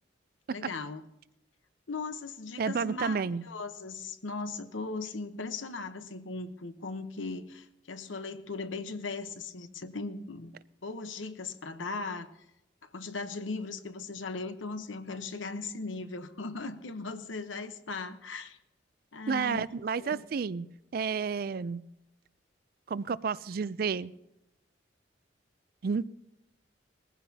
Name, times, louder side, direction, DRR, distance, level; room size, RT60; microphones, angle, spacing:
voice 1, 0.5-1.0 1.9-10.5 10.8-12.3 12.9-18.6 19.1-19.6 20.0-20.2, left 3 dB, 85° left, 10 dB, 1.0 m, -38 dB
voice 2, 2.6-3.4 19.3-20.7 20.9-21.8 22.9-24.1 25.8-26.1, right 5 dB, 50° right, 18 dB, 0.4 m, -31 dB
20.0 x 15.0 x 2.8 m, 0.86 s
head